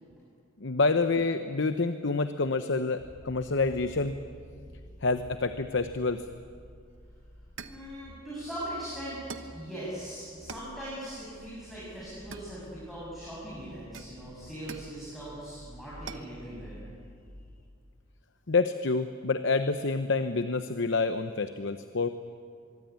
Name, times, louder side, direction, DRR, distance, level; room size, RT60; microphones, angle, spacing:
voice 1, 0.6-4.1 5.0-6.2 18.5-22.1, left 3 dB, 65° left, 9 dB, 0.9 m, -27 dB
sound 1, 3.0-17.7, equal, 45° left, 3.5 m, -51 dB
sound 2, 6.9-7.0 7.6-7.9 9.3-9.6 10.5-10.8 12.3-13.0 13.9-15.0 16.1-16.4, right 5 dB, 75° right, 1.3 m, -44 dB
voice 2, 7.7-9.2 9.5-16.9, equal, ahead, -9 dB, 8.0 m, -40 dB
25.0 x 23.5 x 9.6 m, 2.3 s
head